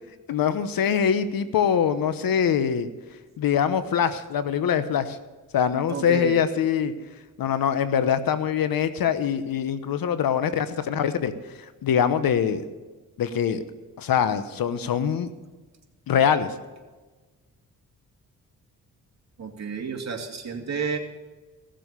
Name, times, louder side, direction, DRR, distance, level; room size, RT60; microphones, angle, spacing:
voice 1, 0.3-2.9 3.4-5.2 5.5-6.9 7.4-11.3 11.8-12.6 13.2-13.6 14.0-15.3 16.1-16.5, left 8 dB, 70° left, 12 dB, 1.1 m, -23 dB
voice 2, 5.9-6.4 19.4-21.0, right 5 dB, 50° right, 2 dB, 2.6 m, -31 dB
16.0 x 7.7 x 6.8 m, 1.3 s
cardioid pair, 75°, 36 cm